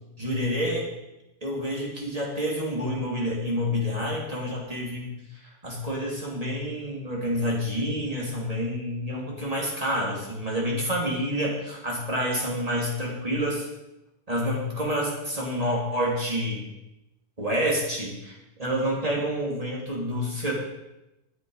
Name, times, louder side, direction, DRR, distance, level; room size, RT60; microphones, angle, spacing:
voice 1, 0.2-0.9 1.4-13.7 14.3-16.6 17.4-20.5, equal, 10° right, -3 dB, 2.6 m, -28 dB
12.0 x 8.3 x 5.7 m, 0.94 s
omnidirectional pair, 3.7 m